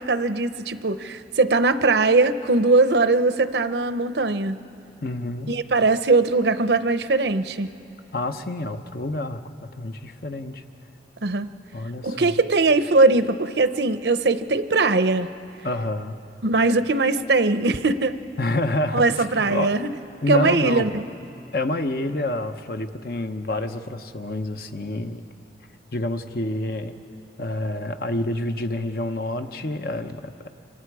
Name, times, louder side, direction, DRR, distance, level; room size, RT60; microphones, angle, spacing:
voice 1, 0.0-4.6 5.5-7.8 11.2-11.5 12.0-15.3 16.4-18.1 18.9-19.9 20.3-21.0, right 3 dB, 70° right, 11 dB, 0.8 m, -20 dB
voice 2, 5.0-5.6 8.1-10.6 11.7-12.3 15.6-16.2 18.4-19.7 20.2-20.9 21.5-25.3 25.9-26.9 27.4-30.5, left 1 dB, 55° left, 8 dB, 0.9 m, -28 dB
26.0 x 25.5 x 4.8 m, 2.6 s
head